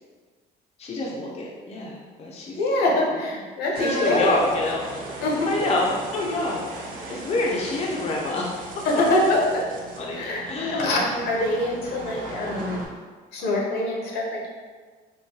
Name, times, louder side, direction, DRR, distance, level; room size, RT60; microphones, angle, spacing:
voice 1, 0.8-2.6 3.7-4.8 5.5-8.6 10.0-10.9 12.5-12.7, left 2 dB, 40° left, -3 dB, 0.5 m, -27 dB
voice 2, 2.5-4.5 5.2-5.7 8.8-9.6 10.1-10.4 10.7-12.9 13.3-14.5, left 1 dB, 75° left, -2 dB, 0.8 m, -24 dB
sound 1, 3.7-12.9, right 2 dB, 55° right, 0.6 m, -36 dB
3.7 x 2.2 x 2.7 m, 1.5 s
cardioid pair, 110°, 17 cm